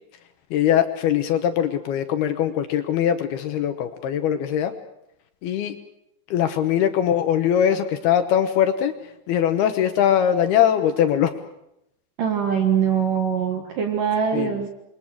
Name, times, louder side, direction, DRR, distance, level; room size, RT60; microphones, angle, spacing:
voice 1, 0.5-4.7 5.4-5.8 6.3-8.9 9.3-11.3 14.3-14.7, left 9 dB, 70° left, 8 dB, 2.7 m, -21 dB
voice 2, 12.2-14.7, right 7 dB, 55° right, 4 dB, 2.8 m, -22 dB
28.0 x 23.0 x 6.4 m, 0.82 s
omnidirectional pair, 5.3 m